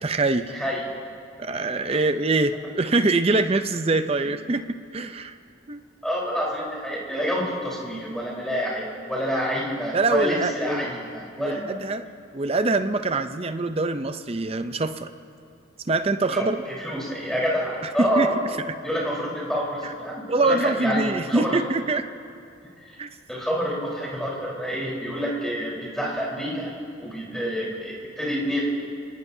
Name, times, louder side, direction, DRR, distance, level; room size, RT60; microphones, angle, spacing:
voice 1, 0.0-0.6 1.4-5.4 5.7-5.8 9.9-10.9 11.4-12.0 12.3-15.1 15.9-16.6 18.0-18.6 19.8-19.9 20.3-22.0 23.0-23.1, right 3 dB, 30° right, 9 dB, 0.6 m, -24 dB
voice 2, 6.0-11.7 16.3-16.5 16.8-18.3 18.8-21.6 22.8-23.0 23.3-26.7 27.0-28.7, equal, 5° left, -5 dB, 4.1 m, -28 dB
27.5 x 18.5 x 2.8 m, 2.5 s
head